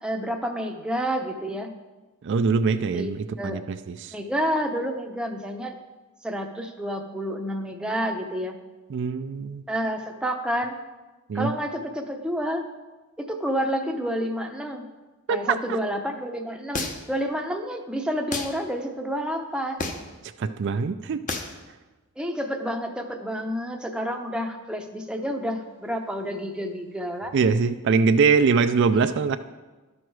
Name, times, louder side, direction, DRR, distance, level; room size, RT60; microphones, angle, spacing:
voice 1, 0.0-1.7 2.9-3.1 3.4-3.6 4.1-5.8 6.2-8.6 9.7-10.8 11.3-12.7 13.2-14.8 15.3-19.9 22.2-27.3, equal, 5° right, 3 dB, 0.6 m, -29 dB
voice 2, 2.2-4.2 8.9-9.6 11.3-11.5 15.3-15.6 20.4-21.2 27.3-29.4, right 5 dB, 55° right, 10 dB, 0.4 m, -23 dB
sound 1, 16.7-17.2 18.3-18.5 19.8-20.2 21.3-21.6, left 3 dB, 35° left, 0.8 m, -30 dB
11.5 x 6.3 x 4.7 m, 1.2 s
head